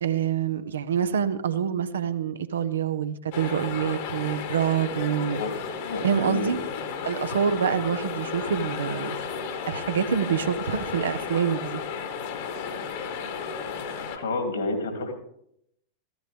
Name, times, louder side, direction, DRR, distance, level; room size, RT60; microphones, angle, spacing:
voice 1, 0.0-5.4 6.0-6.6 7.0-9.1 9.7-11.8, right 8 dB, 65° right, 11 dB, 0.8 m, -26 dB
sound 1, 3.3-14.2, left 6 dB, 50° left, 1.7 m, -33 dB
voice 2, 5.8-6.5 14.1-15.1, left 2 dB, 70° left, 4 dB, 2.8 m, -29 dB
14.5 x 14.0 x 3.5 m, 0.73 s
figure-of-eight pair, 90°, 0 cm